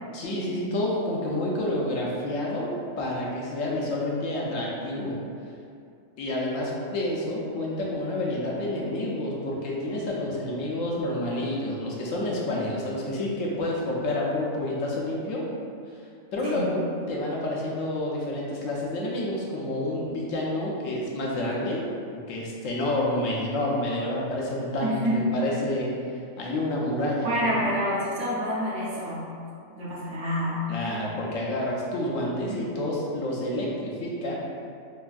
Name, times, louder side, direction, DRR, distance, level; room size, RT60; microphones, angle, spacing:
voice 1, 0.1-2.7 3.0-5.2 6.2-15.5 16.3-21.9 22.3-25.9 26.4-27.5 30.7-34.3, left 1 dB, 75° left, -3 dB, 1.0 m, -29 dB
voice 2, 24.8-25.2 27.2-29.3 29.8-30.7 32.3-32.6, equal, 65° right, -6 dB, 1.0 m, -28 dB
4.1 x 2.5 x 2.3 m, 2.4 s
omnidirectional pair, 1.4 m